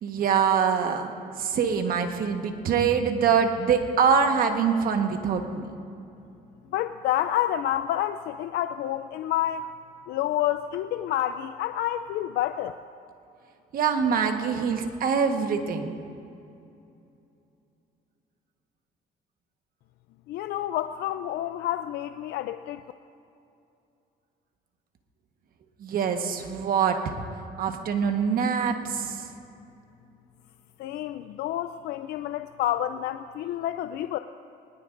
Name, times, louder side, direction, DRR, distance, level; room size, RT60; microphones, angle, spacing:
voice 1, 0.0-5.8 13.7-15.9 25.8-27.2 27.6-29.3, right 6 dB, 60° right, 5 dB, 1.3 m, -24 dB
voice 2, 6.7-9.7 10.1-12.8 20.3-22.8 30.8-34.2, left 12 dB, 75° left, 9 dB, 0.4 m, -29 dB
20.5 x 19.5 x 2.6 m, 2.6 s
cardioid pair, 110°, 17 cm